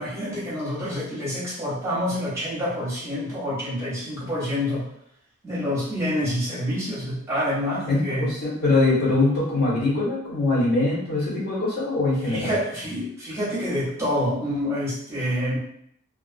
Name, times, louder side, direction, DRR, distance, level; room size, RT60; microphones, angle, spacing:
voice 1, 0.0-4.8 5.4-8.3 12.2-15.6, equal, 15° right, -9 dB, 0.9 m, -27 dB
voice 2, 7.9-12.5, left 2 dB, 45° left, -7 dB, 1.2 m, -22 dB
2.5 x 2.4 x 2.5 m, 0.70 s
head